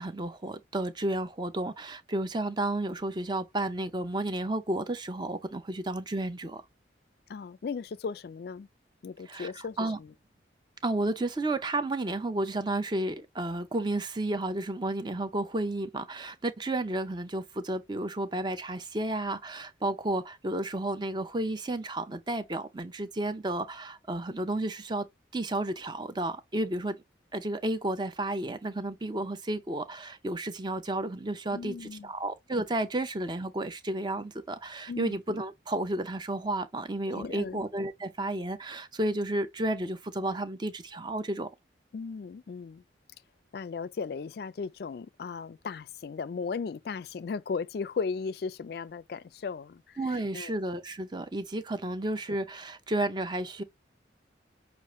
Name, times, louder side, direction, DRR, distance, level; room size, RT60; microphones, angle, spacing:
voice 1, 0.0-6.6 9.3-10.0 10.8-25.1 25.3-27.0 27.3-41.5 50.0-53.6, right 1 dB, 25° right, 0.5 m, -32 dB
voice 2, 7.3-8.7 9.0-10.1 31.5-32.1 34.9-35.2 37.1-37.6 41.9-42.8 43.5-50.5, left 5 dB, 55° left, 0.3 m, -36 dB
6.3 x 2.5 x 3.0 m
head